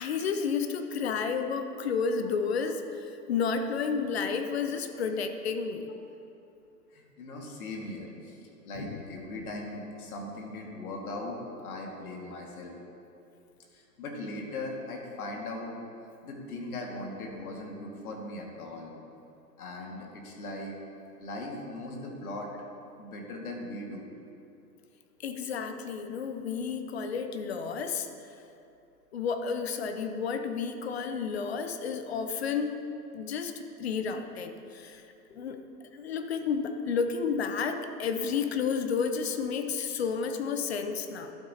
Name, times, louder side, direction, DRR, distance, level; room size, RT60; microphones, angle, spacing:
voice 1, 0.0-5.9 8.8-9.1 25.2-28.1 29.1-32.7 33.1-35.0 35.3-35.6 35.9-41.3, left 6 dB, 40° left, 7 dB, 0.6 m, -31 dB
voice 2, 6.9-12.7 13.7-15.8 16.2-18.9 19.6-20.8 21.2-22.5 23.0-24.1 35.3-35.4, left 2 dB, 55° left, 0 dB, 1.9 m, -39 dB
11.5 x 8.0 x 2.8 m, 2.7 s
hypercardioid pair, 140°, 50 cm